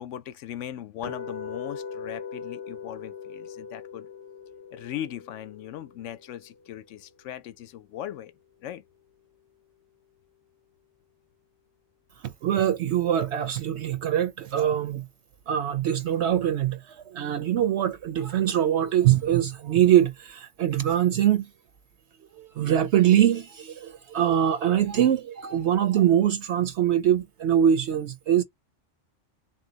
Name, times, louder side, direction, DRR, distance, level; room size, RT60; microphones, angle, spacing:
voice 1, 0.0-4.1 4.7-8.3 8.6-8.8, left 11 dB, 75° left, 0.9 m, -38 dB
sound 1, 1.0-7.1, left 6 dB, 35° left, 0.9 m, -40 dB
voice 2, 12.2-15.0 15.5-21.5 22.4-28.4, right 10 dB, 70° right, 0.8 m, -23 dB
3.7 x 2.7 x 3.9 m
omnidirectional pair, 1.3 m